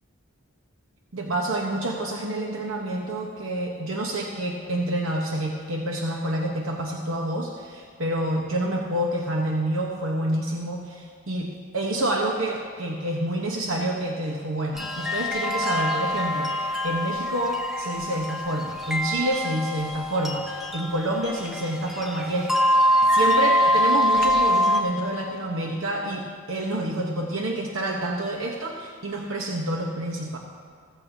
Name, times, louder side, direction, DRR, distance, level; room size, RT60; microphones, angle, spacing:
voice 1, 1.1-22.8 23.1-30.4, right 1 dB, 75° right, 0 dB, 1.0 m, -28 dB
sound 1, 14.8-24.8, equal, ahead, 0.9 m, -24 dB
15.0 x 14.5 x 2.7 m, 2.2 s
head